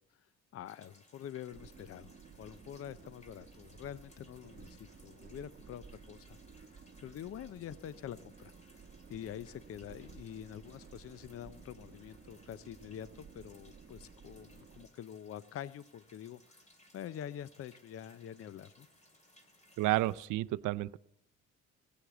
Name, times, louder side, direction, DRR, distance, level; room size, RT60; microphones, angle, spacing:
voice 1, 0.5-16.4 16.9-18.9, left 10 dB, 50° left, 17 dB, 0.5 m, -46 dB
sound 1, 0.7-20.3, left 1 dB, 25° left, 2.5 m, -64 dB
sound 2, 1.5-14.9, right 5 dB, 35° right, 1.2 m, -55 dB
voice 2, 19.8-21.0, right 17 dB, 85° right, 17 dB, 0.5 m, -31 dB
16.0 x 8.7 x 7.9 m, 0.74 s
cardioid pair, 90°, 30 cm